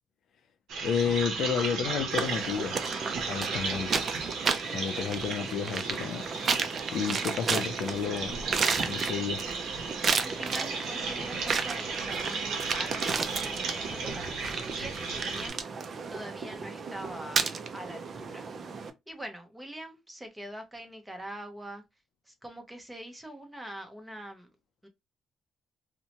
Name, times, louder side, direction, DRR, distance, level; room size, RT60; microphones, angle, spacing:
sound 1, 0.7-15.5, right 4 dB, 80° right, 0.7 m, -35 dB
voice 1, 0.8-2.9 3.3-3.9 4.7-6.3 6.9-8.4 8.8-9.4, left 7 dB, 75° left, 0.4 m, -31 dB
sound 2, 2.2-18.9, right 5 dB, 50° right, 0.4 m, -33 dB
voice 2, 10.2-15.6 16.1-17.5 17.7-18.5 19.1-21.8 22.3-24.5 24.8-24.9, right 1 dB, 10° right, 0.8 m, -43 dB
2.7 x 2.1 x 2.8 m
cardioid pair, 90°, 0 cm